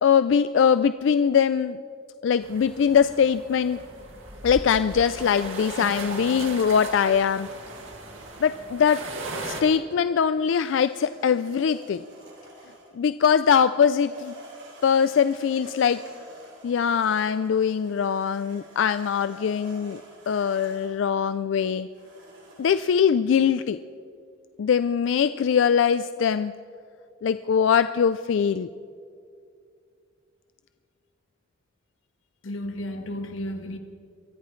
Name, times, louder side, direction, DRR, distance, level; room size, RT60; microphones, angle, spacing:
voice 1, 0.0-1.8 2.2-3.8 4.4-7.5 8.4-9.0 9.4-12.0 13.0-14.3 14.8-16.0 16.6-20.0 20.3-21.9 22.6-23.8 24.6-26.5 27.2-28.7, left 7 dB, 65° left, 0.3 m, -22 dB
sound 1, 2.4-9.6, right 2 dB, 80° right, 2.1 m, -37 dB
sound 2, 7.3-8.7 10.4-13.0 13.8-21.0 21.9-23.1, right 2 dB, 60° right, 3.4 m, -50 dB
voice 2, 32.4-33.8, left 1 dB, 85° left, 1.3 m, -33 dB
23.0 x 14.5 x 3.2 m
head